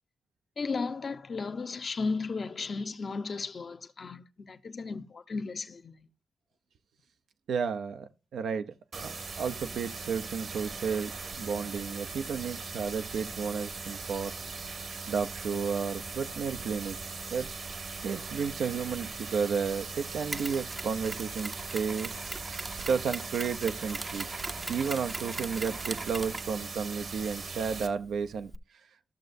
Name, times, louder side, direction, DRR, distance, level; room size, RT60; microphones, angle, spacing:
voice 1, 0.6-6.1, left 4 dB, 50° left, 0.8 m, -35 dB
voice 2, 7.5-9.1 9.4-11.1 11.4-14.3 15.1-17.0 17.3-17.5 18.0-22.1 22.5-24.3 24.7-28.5, right 6 dB, 80° right, 0.7 m, -32 dB
sound 1, 8.9-27.9, right 4 dB, 60° right, 1.4 m, -40 dB
Mechanisms, 20.3-28.6, right 2 dB, 30° right, 0.6 m, -41 dB
14.5 x 6.5 x 2.6 m
cardioid pair, 60°, 0 cm